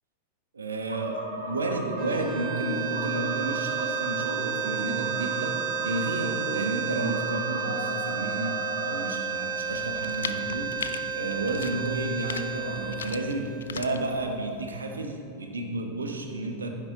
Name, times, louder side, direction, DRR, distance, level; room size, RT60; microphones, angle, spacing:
voice 1, 0.5-16.7, right 2 dB, 70° right, 4 dB, 1.2 m, -32 dB
sound 1, 0.9-9.0, equal, 90° right, 1.6 m, -36 dB
sound 2, 1.9-14.2, right 7 dB, 40° right, 1.1 m, -32 dB
sound 3, 9.7-14.8, left 6 dB, 70° left, 0.4 m, -40 dB
15.0 x 7.3 x 3.9 m, 2.5 s
figure-of-eight pair, 90°, 0 cm